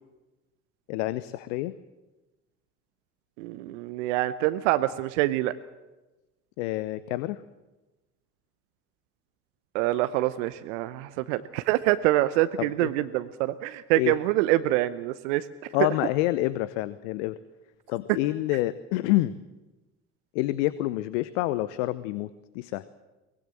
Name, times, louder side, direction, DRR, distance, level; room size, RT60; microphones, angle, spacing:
voice 1, 0.9-1.7 6.6-7.4 12.6-12.9 13.9-14.1 15.7-17.4 17.9-19.4 20.3-22.8, left 17 dB, 70° left, 17 dB, 0.8 m, -28 dB
voice 2, 3.4-5.5 9.7-15.5, right 16 dB, 70° right, 13 dB, 0.9 m, -25 dB
23.5 x 19.5 x 7.7 m, 1.1 s
hypercardioid pair, 55°, 37 cm